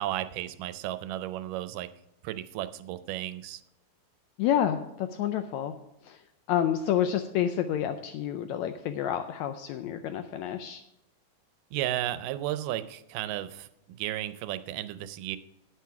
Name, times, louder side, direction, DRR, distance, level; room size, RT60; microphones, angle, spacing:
voice 1, 0.0-1.9 2.2-3.6 11.7-15.4, right 13 dB, 85° right, 12 dB, 2.2 m, -34 dB
voice 2, 4.4-5.7 6.0-6.2 6.5-10.8, left 10 dB, 80° left, 9 dB, 1.6 m, -29 dB
9.4 x 8.6 x 5.9 m, 0.86 s
omnidirectional pair, 3.8 m